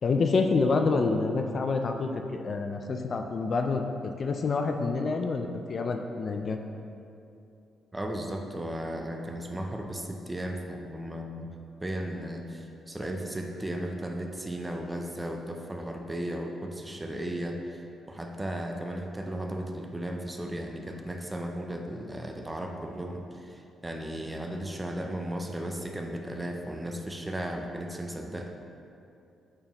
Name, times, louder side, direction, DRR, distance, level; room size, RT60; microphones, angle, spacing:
voice 1, 0.0-3.8 4.2-6.6, left 4 dB, 40° left, 5 dB, 0.4 m, -27 dB
voice 2, 7.9-11.5 11.8-28.5, right 1 dB, 10° right, 3 dB, 0.5 m, -35 dB
8.6 x 4.5 x 2.9 m, 2.6 s
cardioid pair, 130°, 0 cm